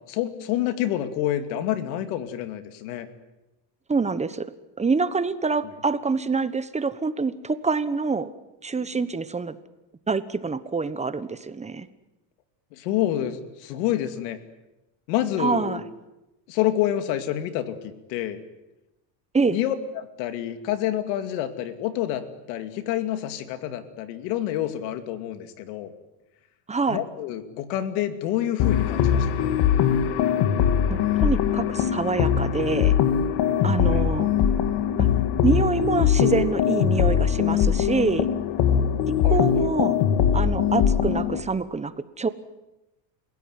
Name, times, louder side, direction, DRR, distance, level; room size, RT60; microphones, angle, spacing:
voice 1, 0.1-3.1 12.7-14.4 15.1-15.8 16.5-18.4 19.5-25.9 26.9-29.5 33.9-34.0 39.2-39.7, left 12 dB, 80° left, 9 dB, 2.6 m, -28 dB
voice 2, 3.9-4.5 4.8-8.3 8.6-9.6 10.1-11.9 15.4-15.8 19.3-19.6 26.7-27.0 30.9-32.9 33.6-34.3 35.0-35.1 35.4-38.3 39.2-40.0 40.3-42.3, right 4 dB, 15° right, 13 dB, 1.1 m, -26 dB
sound 1, 28.6-41.4, left 8 dB, 55° left, 2.2 m, -21 dB
30.0 x 16.5 x 9.5 m, 0.99 s
supercardioid pair, 130°, 49 cm